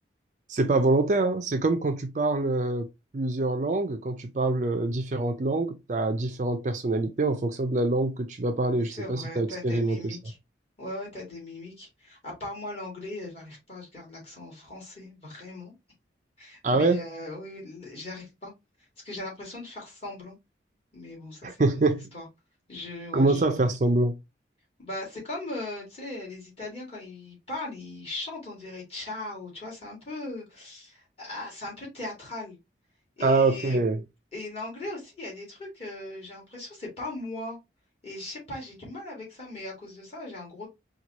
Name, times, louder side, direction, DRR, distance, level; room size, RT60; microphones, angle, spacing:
voice 1, 0.5-2.9 3.1-10.2 16.6-17.0 21.4-22.1 23.1-24.2 33.2-34.0, right 2 dB, 40° right, 0.4 m, -25 dB
voice 2, 8.7-10.4 10.8-15.7 16.4-18.5 19.0-20.4 20.9-21.8 22.1-22.3 22.7-23.4 24.8-32.6 33.2-33.8 34.3-37.6 38.0-40.7, left 2 dB, 35° left, 2.3 m, -39 dB
4.5 x 2.3 x 2.8 m
head